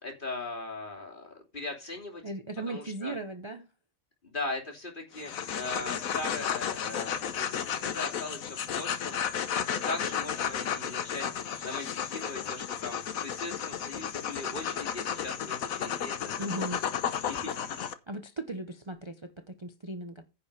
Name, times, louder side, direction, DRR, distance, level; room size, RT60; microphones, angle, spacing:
voice 1, 0.0-2.2 2.7-3.1 4.2-9.2 9.6-11.3 11.6-16.7 17.2-17.9, left 2 dB, 35° left, 3.1 m, -39 dB
voice 2, 2.2-3.7 16.4-16.8 18.1-20.2, right 2 dB, 25° right, 0.8 m, -37 dB
sound 1, 5.1-17.9, left 8 dB, 85° left, 1.4 m, -33 dB
9.9 x 5.6 x 6.7 m
omnidirectional pair, 1.4 m